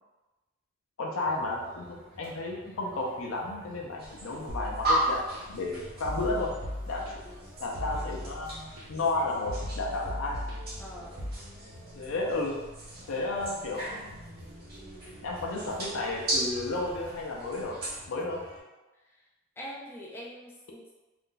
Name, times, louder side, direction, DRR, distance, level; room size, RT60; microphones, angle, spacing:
voice 1, 1.0-5.2 5.5-6.5 6.9-7.0 7.6-10.4 12.0-12.6 13.1-14.1 15.2-17.8 18.1-18.4, left 2 dB, 65° left, -2 dB, 0.5 m, -32 dB
sound 1, 1.2-18.6, equal, 65° right, 1.0 m, -50 dB
sound 2, 4.0-18.0, right 1 dB, 45° right, 0.8 m, -37 dB
sound 3, 4.5-5.4 6.0-7.4 7.7-8.8 9.5-11.3, equal, 90° right, 0.9 m, -38 dB
voice 2, 7.0-7.4 10.8-11.2 19.6-20.9, equal, 10° left, -4 dB, 0.4 m, -44 dB
2.5 x 2.2 x 3.8 m, 1.1 s
head